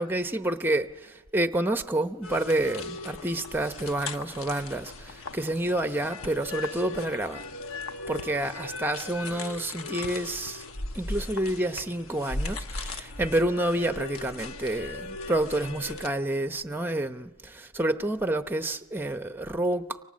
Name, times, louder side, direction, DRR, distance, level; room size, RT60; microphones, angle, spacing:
voice 1, 0.0-7.4 8.1-10.6 10.9-20.0, right 1 dB, 10° right, 0.8 m, -29 dB
sound 1, 2.2-16.1, left 3 dB, 65° left, 1.1 m, -38 dB
29.5 x 24.5 x 7.5 m
head